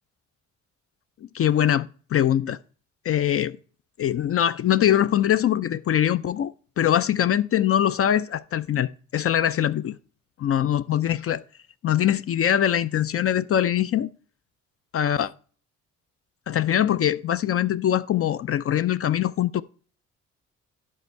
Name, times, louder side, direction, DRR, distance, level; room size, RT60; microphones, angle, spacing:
voice 1, 1.3-2.6 3.0-3.6 4.0-10.0 10.4-11.4 11.8-14.1 14.9-15.3 16.5-19.6, left 10 dB, 50° left, 0.5 m, -22 dB
11.0 x 5.4 x 4.5 m
cardioid pair, 90°, 30 cm